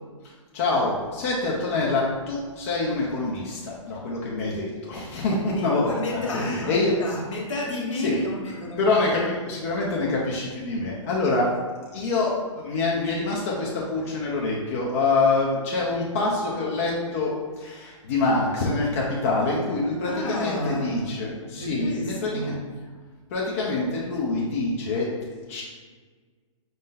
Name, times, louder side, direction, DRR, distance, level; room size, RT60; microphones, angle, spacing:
voice 1, 0.5-6.9 8.0-8.2 8.8-11.5 11.9-12.3 12.6-17.3 17.6-22.6 23.3-25.6, left 3 dB, 25° left, -4 dB, 0.5 m, -25 dB
voice 2, 5.5-8.9 20.0-21.1 21.5-22.7, left 1 dB, 65° left, -1 dB, 1.3 m, -31 dB
5.2 x 2.6 x 3.7 m, 1.5 s
hypercardioid pair, 165°, 17 cm